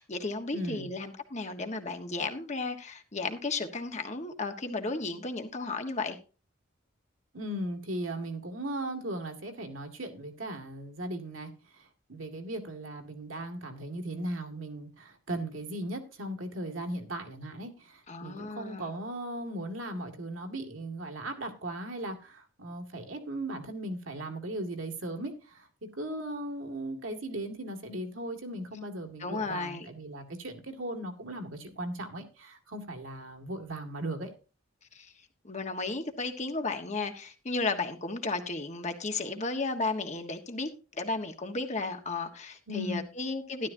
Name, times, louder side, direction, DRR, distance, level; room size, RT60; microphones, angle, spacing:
voice 1, 0.0-6.2 18.1-18.9 29.2-29.9 34.9-35.1 35.4-40.7 41.0-43.7, left 3 dB, 35° left, 1.4 m, -34 dB
voice 2, 0.5-0.9 7.3-25.7 26.0-34.3 42.7-43.1, right 1 dB, 75° right, 2.2 m, -37 dB
12.5 x 11.5 x 2.7 m
head